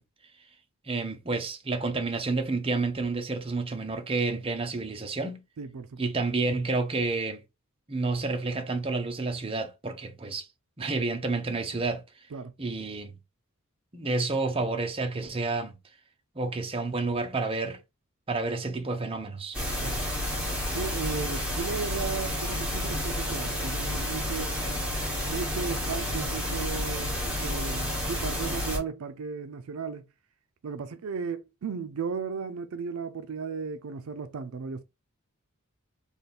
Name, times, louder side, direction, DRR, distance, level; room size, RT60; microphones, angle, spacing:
voice 1, 0.9-5.4 6.0-7.4 7.9-10.5 10.8-12.0 12.6-13.1 13.9-15.7 16.4-17.8 18.3-19.6, right 3 dB, 25° right, 0.7 m, -30 dB
voice 2, 5.6-6.1 12.3-12.5 19.8-20.0 20.7-24.5 25.3-30.1 30.6-34.8, right 5 dB, 75° right, 0.4 m, -35 dB
sound 1, 19.5-28.8, left 1 dB, 5° right, 1.5 m, -30 dB
3.5 x 2.3 x 4.1 m
head